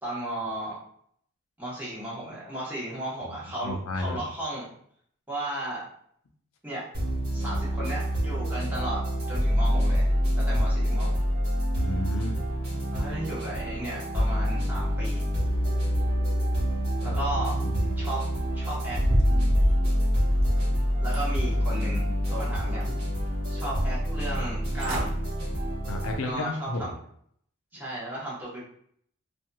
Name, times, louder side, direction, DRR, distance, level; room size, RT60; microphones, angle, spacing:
voice 1, 0.0-0.8 1.6-4.6 5.3-5.9 6.6-6.9 7.3-11.1 12.9-15.2 17.0-17.6 18.0-18.2 18.5-19.0 21.0-22.9 23.5-25.1 26.2-26.9 27.7-28.6, right 1 dB, 10° right, -8 dB, 0.9 m, -35 dB
voice 2, 3.6-4.2 11.8-12.4 17.1-17.9 25.9-26.9, left 2 dB, 85° left, 2 dB, 0.5 m, -33 dB
sound 1, 6.9-26.2, equal, 50° right, 1.2 m, -26 dB
sound 2, 18.7-20.7 21.1-22.0 22.4-23.2 23.6-23.7 24.5-24.6 24.8-25.1 25.6-25.8 26.3-26.4, right 1 dB, 80° right, 0.6 m, -32 dB
2.8 x 2.5 x 2.2 m, 0.65 s
head